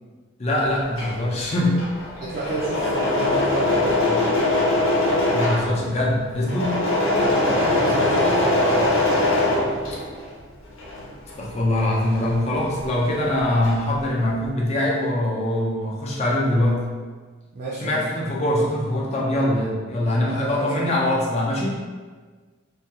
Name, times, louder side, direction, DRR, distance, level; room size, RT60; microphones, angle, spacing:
voice 1, 0.4-1.8 5.3-6.7 11.4-16.9 17.8-21.7, left 1 dB, 30° left, -3 dB, 0.4 m, -23 dB
Engine / Mechanisms, 0.7-10.3 10.7-13.0 13.3-14.0, left 2 dB, 85° left, 0.7 m, -22 dB
voice 2, 2.2-4.3 7.4-9.0 17.5-18.0 20.2-21.0, right 2 dB, 45° right, -8 dB, 0.4 m, -31 dB
2.3 x 2.2 x 2.7 m, 1.5 s
head